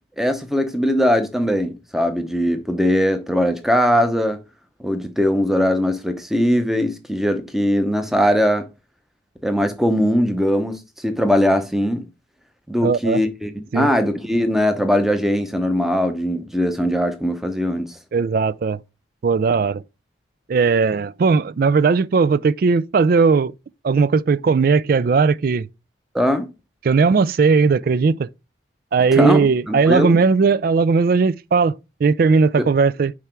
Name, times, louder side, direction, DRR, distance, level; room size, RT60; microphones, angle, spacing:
voice 1, 0.2-4.4 4.8-8.7 9.4-12.0 12.7-17.9 26.1-26.5 29.1-30.2, equal, ahead, 0.8 m, -20 dB
voice 2, 12.8-13.2 13.7-13.9 18.1-18.8 19.2-19.8 20.5-23.5 23.8-25.7 26.8-28.3 28.9-31.7 32.0-33.1, right 5 dB, 50° right, 0.3 m, -17 dB
5.7 x 4.8 x 4.5 m
head